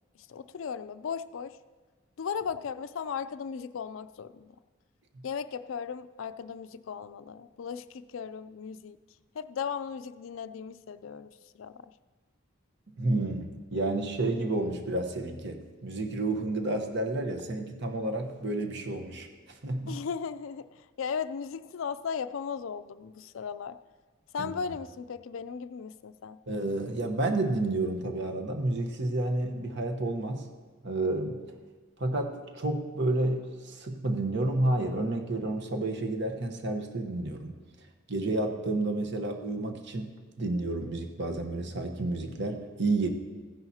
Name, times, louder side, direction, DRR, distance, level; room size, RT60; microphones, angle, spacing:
voice 1, 0.3-1.6 2.2-4.5 5.2-9.0 9.3-11.7 19.9-23.8 24.3-26.4, left 6 dB, 75° left, 13 dB, 0.4 m, -36 dB
voice 2, 13.0-19.3 19.6-20.0 24.4-24.5 26.5-30.4 30.8-31.4 32.0-37.6 38.1-43.1, right 2 dB, 60° right, 4 dB, 1.1 m, -30 dB
15.0 x 10.5 x 2.8 m, 1.4 s
head